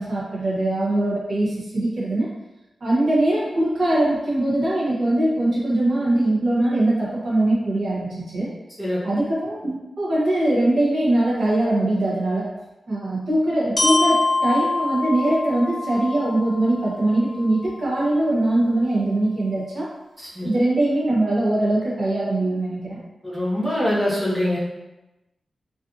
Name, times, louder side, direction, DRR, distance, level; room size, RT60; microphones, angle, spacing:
voice 1, 0.0-2.3 2.8-8.5 9.0-12.5 12.9-19.9 20.4-23.0, right 1 dB, 65° right, -6 dB, 0.8 m, -22 dB
Glockenspiel, 13.8-17.7, left 2 dB, 25° left, 0.7 m, -25 dB
voice 2, 20.2-20.5 23.2-24.6, left 1 dB, ahead, -8 dB, 1.0 m, -23 dB
2.5 x 2.5 x 2.5 m, 1.0 s
cardioid pair, 70°, 0 cm